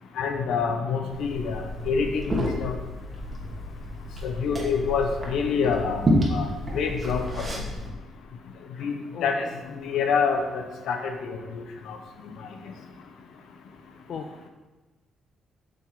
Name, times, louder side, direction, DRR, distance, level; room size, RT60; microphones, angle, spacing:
voice 1, 0.2-2.7 4.2-7.6 8.8-9.5 9.8-12.0, left 5 dB, 80° left, 5 dB, 1.0 m, -27 dB
Liquid, 1.1-7.9, equal, 30° right, 2.2 m, -30 dB
voice 2, 14.1-14.5, left 6 dB, 60° left, 4 dB, 0.6 m, -38 dB
7.1 x 6.4 x 5.0 m, 1.2 s
cardioid pair, 90°, 0 cm